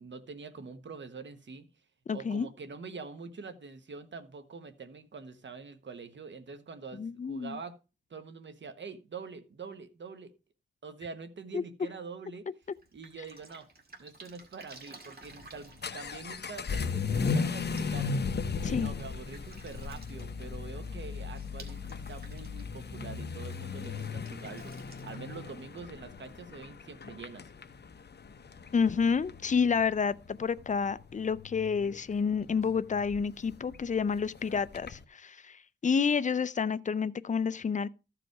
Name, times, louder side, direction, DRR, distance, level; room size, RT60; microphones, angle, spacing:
voice 1, 0.0-1.7 2.1-7.8 8.1-10.3 10.8-12.5 12.9-13.7 14.0-18.2 18.6-24.8 25.0-27.5, right 4 dB, 70° right, 1.3 m, -45 dB
voice 2, 2.1-2.5 7.0-7.6 11.5-11.6 18.6-18.9 24.2-24.3 28.7-37.9, left 6 dB, 40° left, 0.5 m, -29 dB
Drip, 12.6-26.7, right 3 dB, 50° right, 2.0 m, -56 dB
Vehicle / Accelerating revving vroom, 15.2-35.0, left 5 dB, 55° left, 0.9 m, -37 dB
14.0 x 5.0 x 4.7 m
wide cardioid pair, 90°, 20 cm